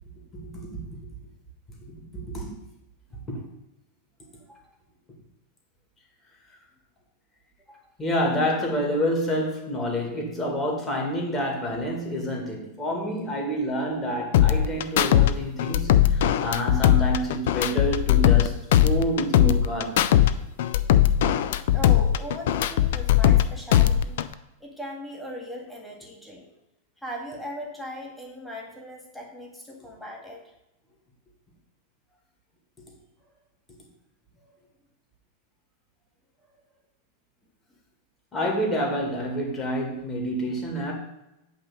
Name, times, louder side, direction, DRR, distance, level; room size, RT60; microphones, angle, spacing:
voice 1, 0.3-1.0 1.8-2.5 3.3-3.4 8.0-20.1 38.3-40.9, equal, 20° left, -1 dB, 2.0 m, -28 dB
sound 1, 14.3-15.3 15.6-18.5 18.7-20.3 20.6-23.4 23.7-24.3, left 11 dB, 55° left, 0.3 m, -19 dB
voice 2, 21.7-24.2 24.6-26.5 27.0-30.5 34.4-34.5, equal, 5° left, -1 dB, 1.7 m, -39 dB
8.6 x 3.1 x 6.3 m, 0.90 s
figure-of-eight pair, 90°, 0 cm